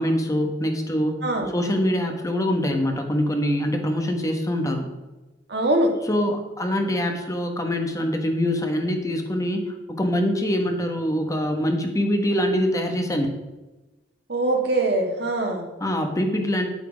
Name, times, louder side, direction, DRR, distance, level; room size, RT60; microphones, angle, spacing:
voice 1, 0.0-1.2 1.5-4.9 6.0-13.3 15.8-16.7, equal, 20° left, 4 dB, 1.3 m, -24 dB
voice 2, 5.5-5.9 14.3-15.6, right 1 dB, 65° right, 2 dB, 2.1 m, -22 dB
10.0 x 8.3 x 5.2 m, 1.1 s
head